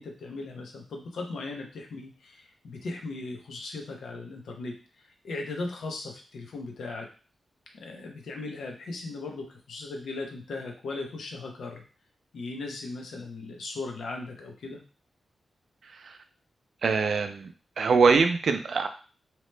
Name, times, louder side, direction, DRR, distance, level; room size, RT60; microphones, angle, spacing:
voice 1, 0.0-7.1 7.7-11.8 12.3-14.8, left 3 dB, 85° left, 2 dB, 0.6 m, -38 dB
voice 2, 16.8-17.5 17.8-18.9, right 5 dB, 60° right, 7 dB, 0.3 m, -22 dB
2.8 x 2.1 x 3.2 m, 0.36 s
wide cardioid pair, 165°, 0 cm